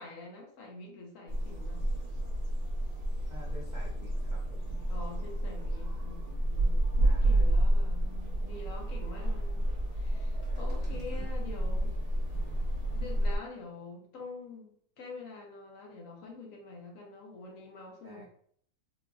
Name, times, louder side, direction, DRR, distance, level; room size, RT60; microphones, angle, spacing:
voice 1, 0.0-1.9 4.9-11.9 12.9-18.3, left 3 dB, 60° left, 0 dB, 1.1 m, -46 dB
sound 1, 1.3-13.4, right 1 dB, 35° right, 0.7 m, -30 dB
voice 2, 3.3-4.8 7.0-7.5 9.4-9.5 10.8-11.3 18.0-18.2, right 2 dB, 85° right, -4 dB, 0.4 m, -50 dB
3.8 x 2.6 x 2.3 m, 0.62 s
omnidirectional pair, 1.7 m